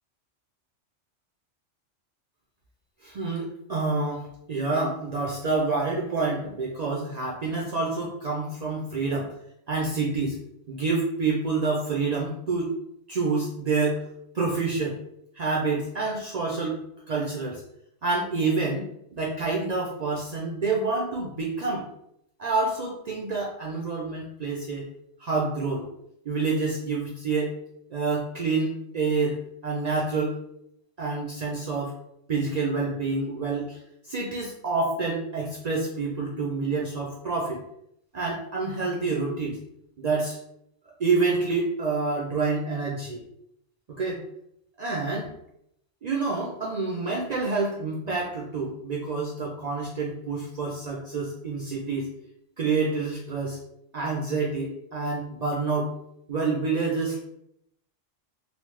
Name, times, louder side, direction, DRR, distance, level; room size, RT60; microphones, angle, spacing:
voice 1, 3.0-9.3 9.7-10.4 10.7-12.7 13.1-14.0 14.3-15.0 15.3-16.8 17.1-17.6 18.0-21.8 22.4-24.9 25.2-25.8 26.3-27.6 27.9-30.4 31.0-31.9 32.3-37.6 38.1-39.6 40.0-40.4 41.0-43.2 44.0-44.2 44.8-45.3 46.0-52.1 52.6-53.6 53.9-55.9 56.3-57.2, right 3 dB, 70° right, -3 dB, 0.3 m, -28 dB
3.1 x 2.0 x 3.0 m, 0.76 s
omnidirectional pair, 1.3 m